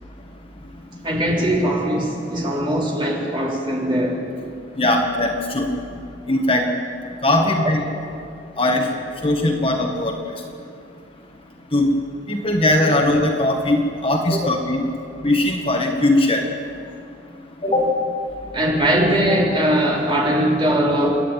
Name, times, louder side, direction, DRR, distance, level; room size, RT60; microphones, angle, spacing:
voice 1, 1.0-4.2 7.4-7.7 14.3-14.5 17.7-18.0 18.5-21.2, equal, 25° right, -3 dB, 3.9 m, -20 dB
voice 2, 4.8-5.7 6.3-6.7 7.2-7.8 8.6-8.9 9.2-10.2 11.7-11.9 12.3-14.9 15.2-16.5 17.7-17.8, left 1 dB, 30° left, 2 dB, 1.6 m, -19 dB
29.0 x 11.5 x 9.2 m, 2.5 s
head